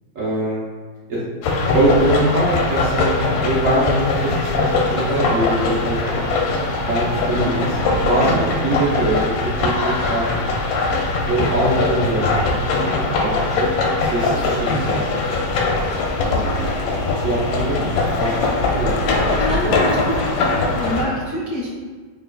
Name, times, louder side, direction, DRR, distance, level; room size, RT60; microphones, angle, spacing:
voice 1, 0.1-0.6 1.1-1.2 1.7-6.3 6.8-10.5 11.3-12.5 12.8-13.5 14.0-15.3 16.2-16.7 17.1-19.2 19.6-19.7, right 1 dB, 55° right, -8 dB, 1.0 m, -23 dB
sound 1, 1.4-21.0, left 3 dB, 90° left, 1.4 m, -21 dB
sound 2, 4.2-8.4, right 2 dB, 90° right, 1.5 m, -37 dB
voice 2, 19.1-20.2 20.8-21.7, left 1 dB, 60° left, -9 dB, 0.6 m, -26 dB
4.7 x 3.1 x 2.3 m, 1.5 s
omnidirectional pair, 2.1 m